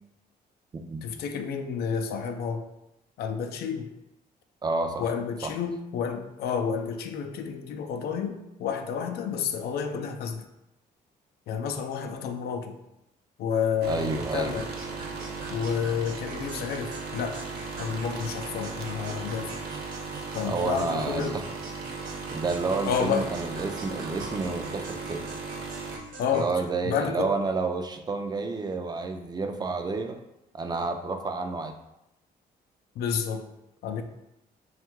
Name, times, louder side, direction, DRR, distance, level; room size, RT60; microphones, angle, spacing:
voice 1, 1.0-2.7 3.2-3.9 5.0-10.5 11.5-12.8 13.4-14.7 15.5-17.4 17.8-19.6 20.3-21.4 22.8-23.3 26.2-26.5 26.8-27.3 33.0-33.5 33.8-34.0, left 7 dB, 80° left, 6 dB, 0.4 m, -30 dB
voice 2, 4.6-5.1 5.4-5.6 13.9-14.6 20.4-21.4 22.3-25.2 26.3-30.2 30.5-31.7, right 3 dB, 25° right, 5 dB, 0.4 m, -30 dB
sound 1, 13.8-26.0, right 4 dB, 75° right, 0.6 m, -37 dB
sound 2, 14.6-26.5, right 3 dB, 60° right, 1.0 m, -44 dB
3.4 x 2.4 x 4.5 m, 0.88 s
cardioid pair, 120°, 16 cm